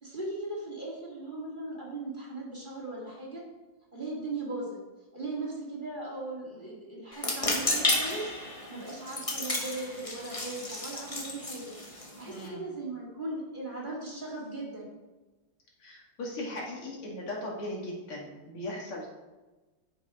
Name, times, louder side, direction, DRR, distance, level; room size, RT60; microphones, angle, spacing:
voice 1, 0.0-3.4 3.9-4.8 5.1-11.7 12.2-14.9, right 2 dB, 20° right, -4 dB, 2.5 m, -38 dB
sound 1, 7.1-12.5, left 2 dB, 20° left, 1.0 m, -32 dB
voice 2, 12.3-12.6 15.8-19.1, left 1 dB, 85° left, -3 dB, 3.2 m, -38 dB
9.3 x 7.2 x 5.0 m, 1.2 s
omnidirectional pair, 2.3 m